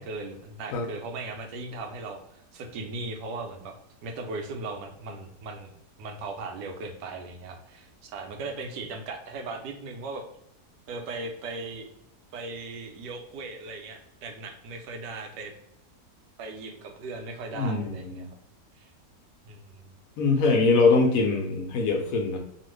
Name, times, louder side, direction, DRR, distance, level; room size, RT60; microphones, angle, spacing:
voice 1, 0.0-3.7 4.0-5.7 6.0-10.2 10.9-11.9 12.3-15.5 16.4-18.3 18.8-18.9 19.5-19.8, right 3 dB, 85° right, 4 dB, 1.2 m, -38 dB
voice 2, 17.5-18.3 20.2-22.4, left 3 dB, 65° left, 3 dB, 0.9 m, -23 dB
2.9 x 2.4 x 3.1 m, 0.78 s
omnidirectional pair, 1.8 m